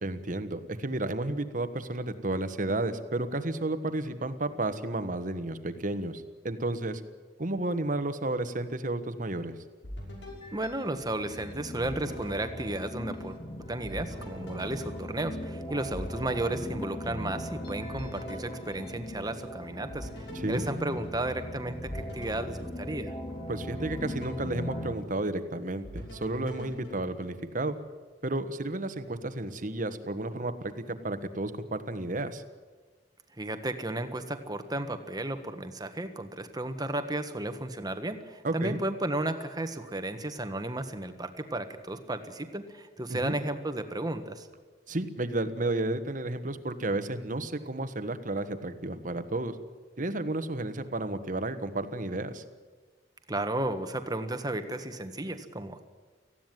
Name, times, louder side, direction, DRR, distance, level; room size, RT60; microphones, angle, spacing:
voice 1, 0.0-7.0 7.4-9.6 20.4-20.6 23.5-27.7 28.2-32.4 38.4-38.8 43.1-43.4 44.9-49.5 50.0-52.4, right 2 dB, 45° right, 10 dB, 1.4 m, -32 dB
sound 1, 9.8-11.4 11.8-13.5 13.8-17.5 17.9-19.5 19.9-23.4 23.8-25.5 25.8-27.8, equal, 85° left, 5.9 m, -44 dB
sound 2, 10.3-24.9, left 1 dB, 30° left, 2.7 m, -40 dB
voice 2, 10.5-13.4 13.7-23.1 33.4-44.5 53.3-55.8, right 1 dB, 20° right, 8 dB, 1.5 m, -33 dB
19.0 x 15.5 x 9.2 m, 1.4 s
head